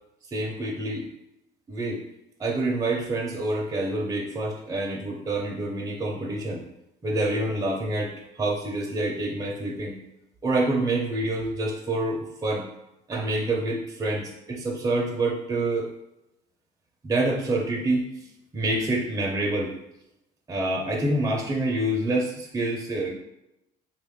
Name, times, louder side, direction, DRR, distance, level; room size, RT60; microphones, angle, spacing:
voice 1, 0.3-1.1 1.7-2.0 2.4-6.6 7.0-10.0 10.4-12.7 13.1-15.9 17.0-18.0 18.5-19.7 20.5-23.1, right 2 dB, 20° right, -2 dB, 0.5 m, -27 dB
3.2 x 2.4 x 3.5 m, 0.90 s
cardioid pair, 110°, 17 cm